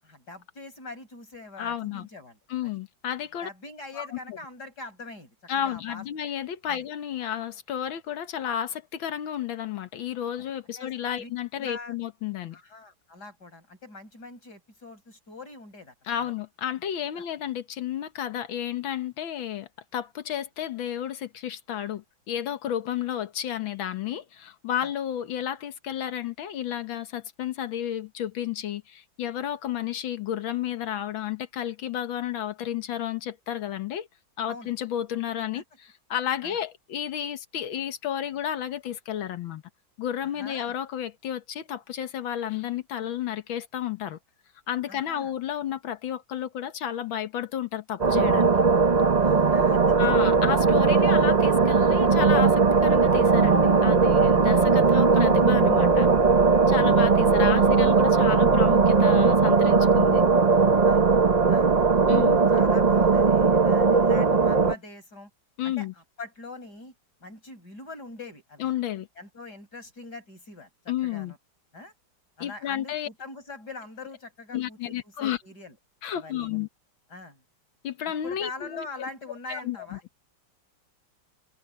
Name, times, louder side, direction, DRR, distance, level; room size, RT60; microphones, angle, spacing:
voice 1, 0.0-2.4 2.6-2.8 3.4-5.4 5.6-6.0 6.7-6.9 10.8-11.3 11.6-11.9 12.5-15.9 16.2-16.3 17.1-17.3 24.8-24.9 34.5-34.7 35.5-35.6 36.4-36.6 40.2-40.7 44.9-45.3 49.2-50.0 51.0-51.3 54.8-55.0 56.7-56.8 57.4-57.5 60.8-61.0 61.5-61.7 62.5-65.3 65.6-65.9 66.2-66.9 67.2-68.7 69.2-70.7 71.0-71.4 71.7-71.9 72.4-75.7 76.1-76.6 77.1-77.4 78.2-80.0, left 3 dB, 55° left, 7.3 m, -43 dB
voice 2, 1.6-2.1 2.5-3.5 3.9-4.4 5.5-12.6 16.1-34.1 34.4-39.6 40.0-44.2 44.7-48.5 49.9-56.1 56.7-60.2 62.1-62.4 65.6-65.9 68.6-69.1 70.9-71.3 72.4-73.1 74.5-75.4 76.0-76.7 77.8-78.9 79.5-80.0, left 10 dB, 80° left, 2.0 m, -32 dB
sound 1, 48.0-64.7, right 4 dB, 30° right, 0.8 m, -19 dB
omnidirectional pair, 2.1 m